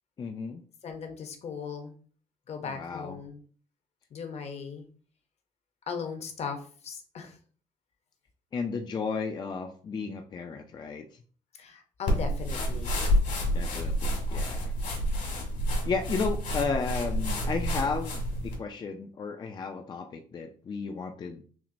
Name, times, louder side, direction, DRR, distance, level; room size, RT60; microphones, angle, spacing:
voice 1, 0.2-0.6 2.8-3.2 8.5-11.1 13.5-14.7 15.8-21.4, left 5 dB, 30° left, 5 dB, 0.4 m, -33 dB
voice 2, 0.8-1.9 2.5-3.4 4.1-4.9 5.9-7.4 11.6-13.0, left 5 dB, 45° left, 5 dB, 0.8 m, -38 dB
sound 1, 12.1-18.6, equal, 65° left, 1.7 m, -29 dB
5.9 x 2.1 x 2.6 m, 0.43 s
cardioid pair, 120°, 15 cm